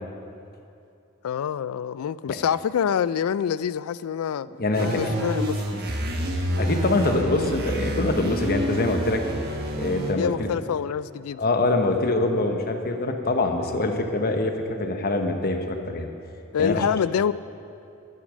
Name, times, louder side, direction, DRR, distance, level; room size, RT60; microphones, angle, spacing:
voice 1, 1.2-4.5 4.8-5.5 10.0-11.4 16.5-17.3, left 8 dB, 75° left, 0.3 m, -26 dB
voice 2, 4.6-5.2 6.6-9.2 9.8-10.3 11.4-16.1 16.6-16.8, left 2 dB, 45° left, 1.0 m, -24 dB
sound 1, 4.7-10.1, right 1 dB, 50° right, 1.4 m, -28 dB
13.5 x 8.6 x 6.3 m
head